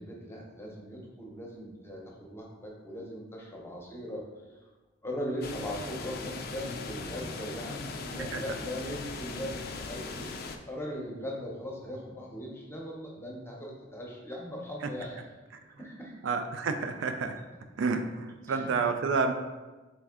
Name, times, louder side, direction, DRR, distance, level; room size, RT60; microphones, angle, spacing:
voice 1, 0.0-4.6 5.0-10.3 10.7-15.2 15.8-16.1 18.5-18.7, equal, 15° left, -2 dB, 0.7 m, -39 dB
sound 1, 5.4-10.6, left 4 dB, 55° left, 0.3 m, -39 dB
voice 2, 16.2-17.4 17.8-19.3, right 4 dB, 85° right, 7 dB, 0.3 m, -29 dB
3.5 x 3.2 x 3.5 m, 1.2 s
head